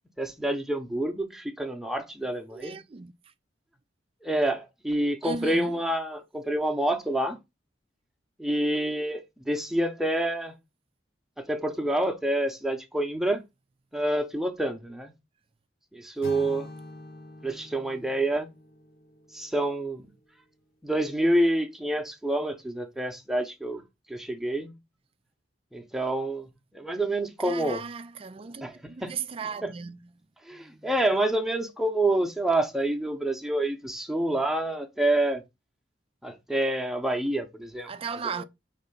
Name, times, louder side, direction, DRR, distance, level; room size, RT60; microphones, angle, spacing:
voice 1, 0.2-2.8 4.2-7.4 8.4-10.5 11.4-13.4 13.9-15.1 15.9-16.7 17.4-18.5 19.3-20.1 20.8-23.8 24.1-24.8 25.7-27.8 28.6-29.1 29.6-29.7 30.5-35.4 36.2-37.9, right 1 dB, ahead, 0.8 m, -27 dB
voice 2, 2.5-3.1 5.2-5.8 27.4-30.1 30.6-30.9 37.9-38.4, right 5 dB, 30° right, 0.4 m, -36 dB
sound 1, 16.2-20.2, left 2 dB, 55° left, 1.2 m, -46 dB
5.6 x 3.3 x 5.4 m
head